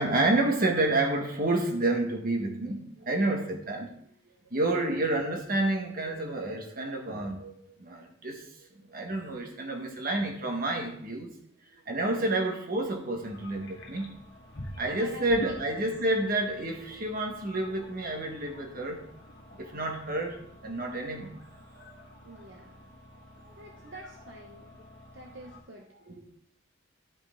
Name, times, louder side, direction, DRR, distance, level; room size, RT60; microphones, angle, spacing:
voice 1, 0.0-3.9 4.5-8.4 8.8-11.3 11.9-14.2 14.8-19.0 19.5-21.4 21.7-22.0 26.1-26.3, right 2 dB, 45° right, 2 dB, 1.5 m, -29 dB
sound 1, 13.2-25.6, left 1 dB, 60° left, 1.3 m, -47 dB
voice 2, 15.0-15.6 22.2-22.9 23.6-24.8 25.1-25.9, right 1 dB, 60° right, 1 dB, 1.0 m, -47 dB
11.5 x 5.6 x 3.8 m, 0.68 s
head